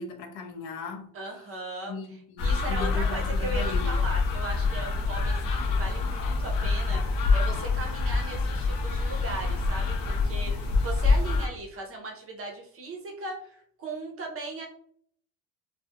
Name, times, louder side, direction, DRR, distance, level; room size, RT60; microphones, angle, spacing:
voice 1, 0.0-1.1 1.8-3.9, left 4 dB, 80° left, 0.8 m, -37 dB
voice 2, 1.1-2.0 2.4-14.7, right 2 dB, 30° right, 0.5 m, -38 dB
sound 1, 2.4-11.5, left 3 dB, 50° left, 0.6 m, -26 dB
3.3 x 2.1 x 2.8 m
cardioid pair, 155°, 45 cm